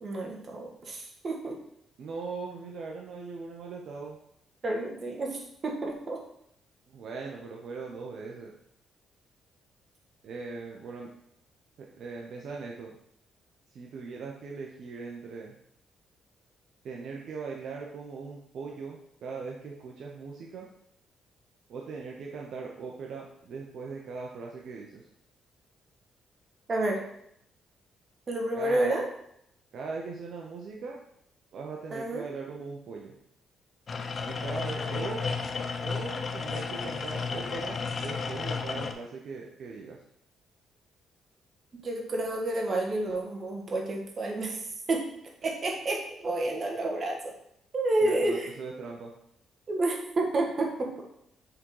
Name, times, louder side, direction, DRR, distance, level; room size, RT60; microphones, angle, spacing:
voice 1, 0.0-1.6 4.6-6.2 26.7-27.0 28.3-29.0 31.9-32.2 41.8-44.6 44.9-45.0 45.4-47.3 47.7-48.5 49.7-51.1, right 2 dB, 40° right, 1 dB, 1.5 m, -30 dB
voice 2, 2.0-4.2 6.9-8.5 10.2-11.1 12.0-12.9 13.7-15.5 16.8-20.7 21.7-25.1 28.5-28.9 29.7-31.0 31.5-33.1 34.2-35.2 35.8-40.0 48.0-49.1, right 4 dB, 65° right, -1 dB, 0.8 m, -40 dB
sound 1, 33.9-38.9, left 5 dB, 45° left, 0.6 m, -33 dB
6.4 x 3.8 x 4.7 m, 0.74 s
cardioid pair, 90°, 0 cm